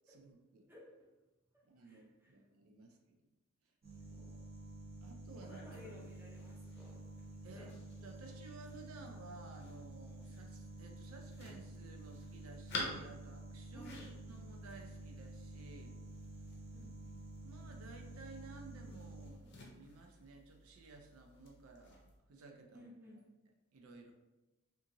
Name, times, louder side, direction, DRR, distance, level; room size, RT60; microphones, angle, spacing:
voice 1, 0.1-0.7 1.7-3.2 4.1-4.4 5.0-5.8 7.4-13.9 14.3-15.9 17.4-22.9 23.7-24.1, right 3 dB, 90° right, 3 dB, 0.4 m, -55 dB
voice 2, 1.5-2.4 5.5-7.0 7.5-7.8 13.7-14.1 16.7-17.2 22.7-23.2, left 1 dB, 10° right, -4 dB, 0.5 m, -57 dB
sound 1, 3.8-19.3, right 2 dB, 45° right, 0.7 m, -50 dB
sound 2, 5.3-22.2, left 2 dB, 55° left, 0.5 m, -52 dB
2.8 x 2.5 x 2.6 m, 1.1 s
head